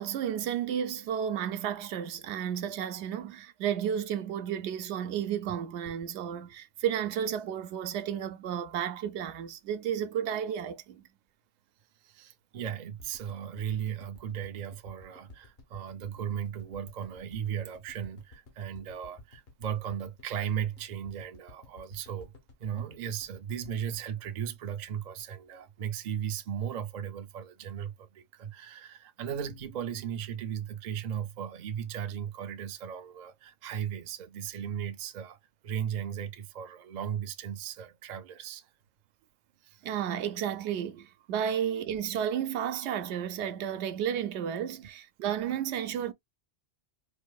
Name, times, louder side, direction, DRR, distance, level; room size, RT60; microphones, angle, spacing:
voice 1, 0.0-11.0 39.8-46.1, right 9 dB, 85° right, 0.9 m, -32 dB
voice 2, 12.0-22.3 22.6-35.4 35.6-38.7 39.6-39.9, right 9 dB, 55° right, 0.5 m, -36 dB
sound 1, 13.0-25.1 25.4-25.5 25.7-25.8, left 2 dB, 65° left, 1.3 m, -54 dB
4.4 x 2.6 x 2.3 m
omnidirectional pair, 1.1 m